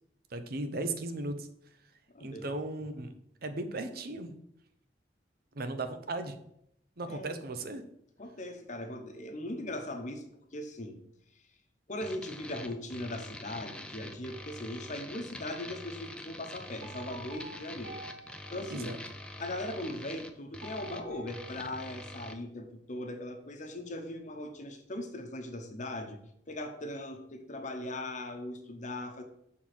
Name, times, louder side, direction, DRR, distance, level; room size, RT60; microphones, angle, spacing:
voice 1, 0.3-1.5 2.2-3.1 3.4-4.3 5.5-6.4 7.0-7.8 18.7-19.0, right 2 dB, 60° right, 8 dB, 0.7 m, -36 dB
voice 2, 2.1-2.5 7.1-7.3 8.2-10.3 10.5-11.0 11.9-18.9 19.4-26.2 26.5-29.2, left 1 dB, 45° left, 6 dB, 0.9 m, -39 dB
sound 1, 12.0-22.4, left 1 dB, 5° left, 0.5 m, -45 dB
sound 2, 16.8-19.5 20.6-22.3, right 2 dB, 75° right, 2.4 m, -50 dB
6.6 x 3.7 x 6.0 m, 0.74 s
head